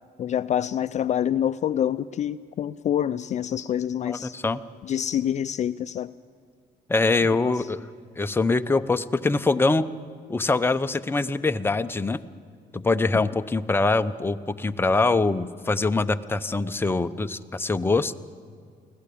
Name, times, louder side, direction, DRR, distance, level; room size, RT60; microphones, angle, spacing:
voice 1, 0.2-4.3 4.8-6.1 7.4-7.7, left 10 dB, 45° left, 13 dB, 0.5 m, -26 dB
voice 2, 4.1-4.6 6.9-7.8 8.2-9.9 10.3-12.2 12.7-18.1, left 3 dB, 15° left, 9 dB, 0.7 m, -23 dB
24.0 x 16.5 x 8.5 m, 2.2 s
cardioid pair, 110°, 17 cm